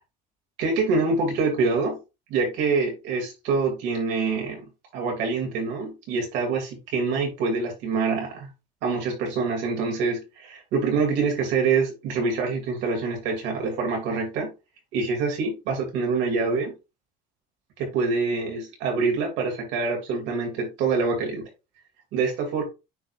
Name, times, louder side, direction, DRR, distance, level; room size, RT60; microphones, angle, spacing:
voice 1, 0.6-2.0 2.3-8.5 8.8-14.5 14.9-16.7 17.8-21.5 22.1-22.6, right 4 dB, 65° right, 1 dB, 2.7 m, -25 dB
9.4 x 4.0 x 2.6 m, 0.27 s
cardioid pair, 180°, 20 cm